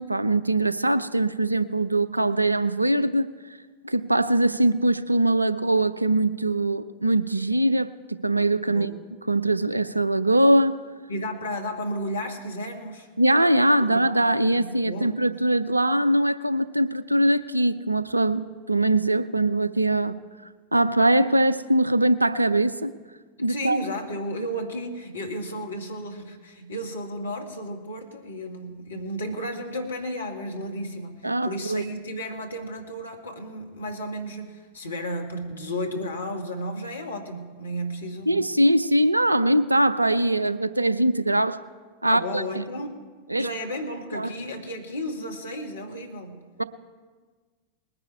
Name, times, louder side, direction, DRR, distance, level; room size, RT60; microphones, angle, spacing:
voice 1, 0.0-3.3 3.8-8.9 9.3-10.8 13.2-20.2 20.7-22.9 23.4-23.8 31.2-31.8 38.3-41.6 42.0-42.4 43.3-43.5 44.1-44.3 46.6-46.7, right 1 dB, 85° right, 0.4 m, -22 dB
voice 2, 11.1-13.1 13.8-14.0 14.5-15.2 23.4-38.3 42.0-43.0 43.4-46.4, equal, 75° left, 1.6 m, -33 dB
20.0 x 9.7 x 4.7 m
figure-of-eight pair, 90°, 0 cm